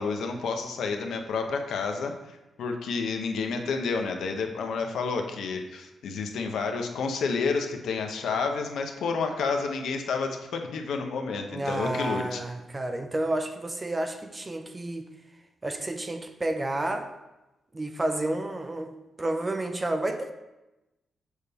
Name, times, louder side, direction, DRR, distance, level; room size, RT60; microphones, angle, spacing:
voice 1, 0.0-12.4, left 4 dB, 80° left, 4 dB, 0.7 m, -30 dB
voice 2, 11.5-15.1 15.6-17.1 17.7-18.9 19.2-20.3, right 1 dB, 20° right, 7 dB, 0.5 m, -30 dB
6.4 x 3.4 x 5.3 m, 1.0 s
wide cardioid pair, 150°, 0 cm